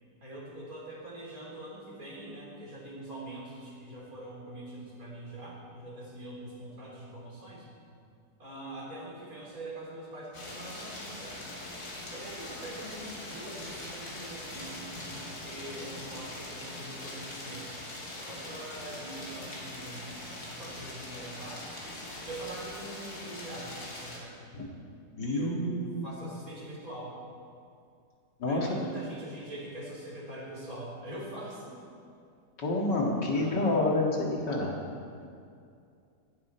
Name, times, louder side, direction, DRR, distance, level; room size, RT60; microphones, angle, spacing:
voice 1, 0.2-7.7 8.4-11.4 12.1-17.8 18.1-20.1 20.5-21.7 22.3-24.6 25.2-27.1 28.5-31.8 33.3-33.9, right 1 dB, 55° right, -5 dB, 4.0 m, -43 dB
sound 1, 10.3-24.2, left 1 dB, 60° left, 2.9 m, -42 dB
voice 2, 25.2-26.0 28.4-28.7 32.6-34.7, left 2 dB, 90° left, -1 dB, 2.7 m, -28 dB
17.5 x 11.5 x 4.4 m, 2.4 s
omnidirectional pair, 1.8 m